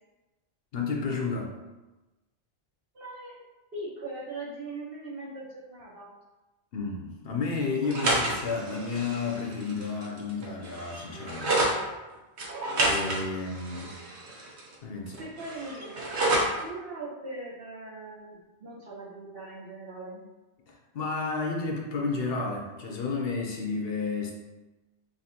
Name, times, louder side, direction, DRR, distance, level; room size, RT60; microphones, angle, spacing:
voice 1, 0.7-1.6 6.7-11.6 12.8-14.0 14.8-15.2 20.7-24.3, left 4 dB, 65° left, 0 dB, 0.8 m, -31 dB
voice 2, 2.9-3.4 3.7-6.1 15.2-20.2, right 2 dB, 60° right, -6 dB, 1.3 m, -40 dB
sound 1, 7.8-11.7 12.4-14.7 15.1-16.6, right 2 dB, 75° right, 1.1 m, -30 dB
5.7 x 2.7 x 2.8 m, 1.1 s
omnidirectional pair, 1.1 m